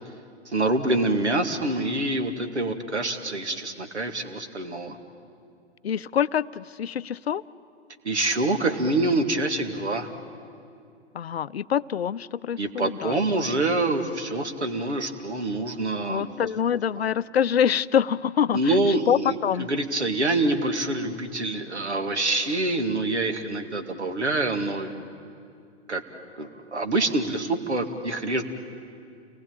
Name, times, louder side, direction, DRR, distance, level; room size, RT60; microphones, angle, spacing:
voice 1, 0.5-5.0 8.0-10.1 12.6-16.5 18.5-24.9 25.9-26.0 26.4-28.4, right 2 dB, 75° right, 7 dB, 2.2 m, -26 dB
voice 2, 5.8-7.4 11.1-13.2 16.1-18.7 19.1-19.7, left 8 dB, 60° left, 17 dB, 0.6 m, -25 dB
29.0 x 19.5 x 9.0 m, 2.4 s
figure-of-eight pair, 115°, 35 cm